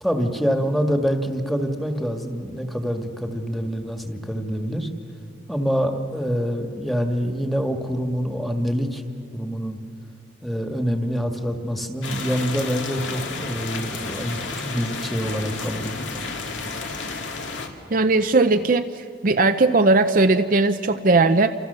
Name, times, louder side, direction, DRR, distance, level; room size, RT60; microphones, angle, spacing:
voice 1, 0.0-4.9 5.5-9.0 9.3-9.8 10.4-16.0, equal, ahead, 4 dB, 1.7 m, -26 dB
sound 1, 12.0-17.7, left 4 dB, 75° left, 2.4 m, -32 dB
voice 2, 17.9-21.5, right 3 dB, 45° right, 8 dB, 0.6 m, -18 dB
29.5 x 27.0 x 6.9 m, 2.5 s
head